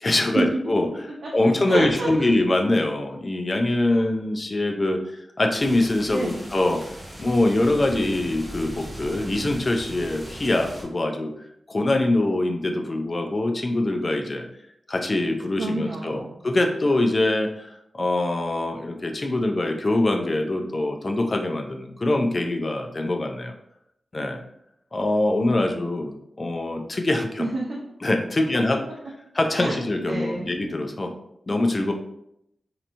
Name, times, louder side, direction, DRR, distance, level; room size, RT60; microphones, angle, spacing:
voice 1, 0.0-0.9 1.3-5.0 5.4-6.8 7.2-11.3 11.7-14.4 14.9-23.5 24.1-24.4 24.9-27.5 28.0-28.8 29.4-31.1 31.5-31.9, left 2 dB, 30° left, 4 dB, 0.4 m, -23 dB
voice 2, 1.2-2.3 3.9-4.1 6.1-6.5 15.6-16.4 27.4-27.8 29.5-30.5, right 2 dB, 60° right, -4 dB, 0.6 m, -29 dB
sound 1, 5.6-10.8, right 1 dB, 5° right, 1.0 m, -39 dB
4.3 x 2.8 x 2.6 m, 0.78 s
wide cardioid pair, 150°, 0 cm